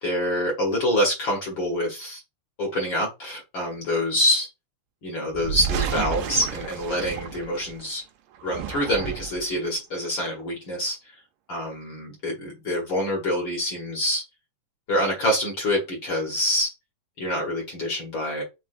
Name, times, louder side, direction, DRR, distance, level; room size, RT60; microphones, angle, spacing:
voice 1, 0.0-2.2 2.6-4.5 5.0-8.0 8.4-11.1 11.5-14.2 14.9-16.7 17.2-18.4, equal, 60° left, -2 dB, 1.3 m, -26 dB
sound 1, 5.3-7.9 8.4-9.5, right 8 dB, 80° right, 2.1 m, -31 dB
6.1 x 2.2 x 2.5 m, 0.25 s
omnidirectional pair, 3.7 m